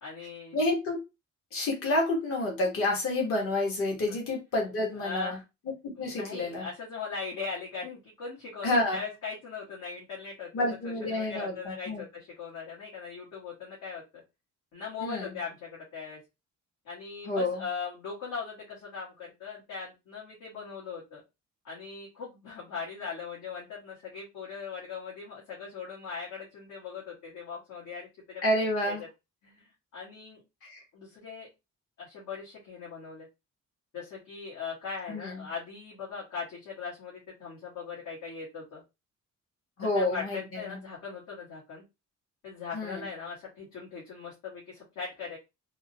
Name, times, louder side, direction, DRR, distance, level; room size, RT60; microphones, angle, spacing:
voice 1, 0.0-0.6 4.1-4.2 5.0-5.4 6.0-14.2 14.7-16.2 16.8-21.2 21.6-28.4 28.8-29.1 29.4-30.4 30.9-31.5 32.0-33.3 33.9-38.8 39.9-41.8 42.4-45.4, left 5 dB, 75° left, -7 dB, 1.5 m, -40 dB
voice 2, 0.5-1.0 1.5-5.4 5.8-6.7 8.6-9.0 10.5-12.0 15.0-15.3 17.3-17.6 28.4-29.0 30.6-30.8 35.1-35.4 39.8-40.8 42.7-43.0, left 1 dB, 50° left, 0 dB, 1.1 m, -29 dB
3.6 x 2.2 x 2.7 m, 0.24 s
wide cardioid pair, 175°, 30 cm